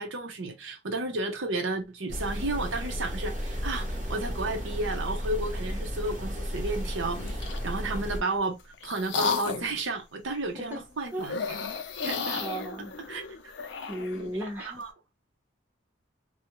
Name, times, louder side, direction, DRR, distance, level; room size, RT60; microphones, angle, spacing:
voice 1, 0.0-11.4 12.0-12.5 13.1-13.5 14.2-14.9, right 2 dB, 80° right, 0.7 m, -33 dB
sound 1, 2.1-8.2, equal, 40° right, 0.7 m, -33 dB
sound 2, 7.1-7.7 8.4-9.8 11.2-14.2, left 5 dB, 65° left, 0.5 m, -33 dB
voice 2, 12.4-12.9 13.9-14.9, right 1 dB, 10° right, 1.0 m, -35 dB
2.4 x 2.2 x 3.0 m
head